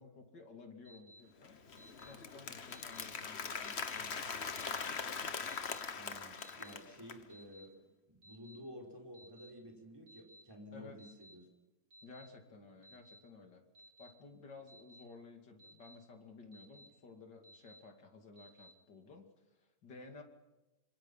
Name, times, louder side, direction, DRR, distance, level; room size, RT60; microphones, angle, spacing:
voice 1, 0.0-1.6 2.0-4.8 5.2-5.5 10.7-11.0 12.0-13.6 14.0-20.2, left 4 dB, 70° left, 4 dB, 3.3 m, -55 dB
Alarm, 0.8-1.2 1.8-2.1 2.7-3.0 3.6-4.0 4.5-4.9 5.4-5.8 6.4-6.7 7.3-7.7 8.2-8.6 9.1-9.5 10.1-10.4 11.0-11.3 11.9-12.3 12.8-13.2 13.7-14.1 14.7-15.0 15.6-15.9 16.5-16.9 17.4-17.8 18.4-18.7, equal, 65° right, 7.1 m, -59 dB
Applause, 1.4-7.2, left 5 dB, 40° left, 1.3 m, -42 dB
voice 2, 5.9-7.7 8.1-11.4, equal, 10° right, 1 dB, 5.2 m, -52 dB
25.5 x 25.5 x 5.7 m, 1.1 s
omnidirectional pair, 2.0 m